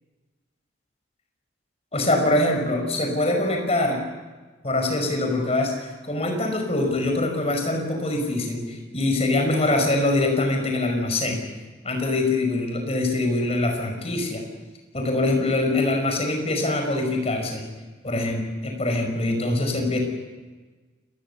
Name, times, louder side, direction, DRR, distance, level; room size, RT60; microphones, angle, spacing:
voice 1, 1.9-4.0 4.6-11.4 11.8-14.4 14.9-17.6 18.0-20.0, left 2 dB, 35° left, 3 dB, 5.5 m, -24 dB
29.5 x 20.0 x 7.1 m, 1.3 s
head